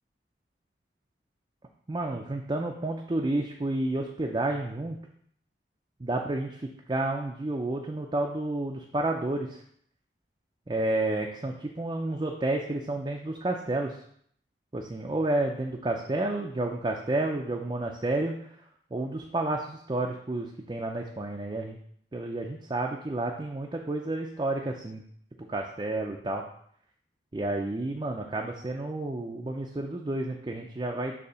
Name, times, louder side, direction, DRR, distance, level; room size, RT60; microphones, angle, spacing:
voice 1, 1.9-5.0 6.0-9.6 10.7-14.0 14.7-18.5 18.9-21.8 22.1-25.0 25.5-26.5 27.3-31.1, right 2 dB, 25° right, 1 dB, 0.4 m, -30 dB
6.6 x 2.8 x 5.5 m, 0.65 s
head